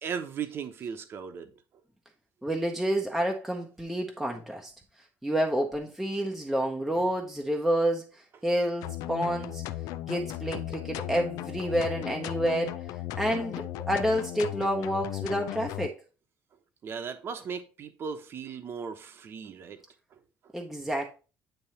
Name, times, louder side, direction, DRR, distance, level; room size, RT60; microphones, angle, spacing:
voice 1, 0.0-1.5 6.9-7.1 16.8-19.8 20.1-20.5, right 6 dB, 40° right, 0.9 m, -37 dB
voice 2, 2.4-4.7 5.2-9.6 10.1-12.8 13.2-16.0 20.5-21.1, equal, ahead, 0.7 m, -29 dB
sound 1, 8.8-15.9, left 14 dB, 85° left, 0.4 m, -36 dB
9.1 x 3.0 x 4.2 m
cardioid pair, 145°, 6 cm